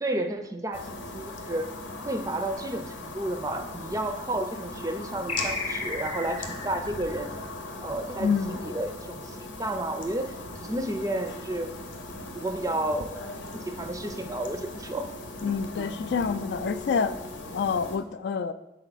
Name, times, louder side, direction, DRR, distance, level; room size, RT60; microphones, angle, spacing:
voice 1, 0.0-0.9 1.1-1.7 2.0-7.3 7.8-10.3 10.6-11.7 12.3-13.2 13.5-15.1 15.4-15.9, right 1 dB, 15° right, 7 dB, 0.4 m, -32 dB
sound 1, 0.7-18.0, left 2 dB, 75° left, 0.8 m, -39 dB
sound 2, 5.3-8.3, left 3 dB, 30° left, 0.7 m, -35 dB
voice 2, 8.2-8.6 15.4-17.1 17.5-18.5, left 6 dB, 60° left, 11 dB, 0.3 m, -27 dB
7.2 x 4.5 x 4.0 m, 0.96 s
head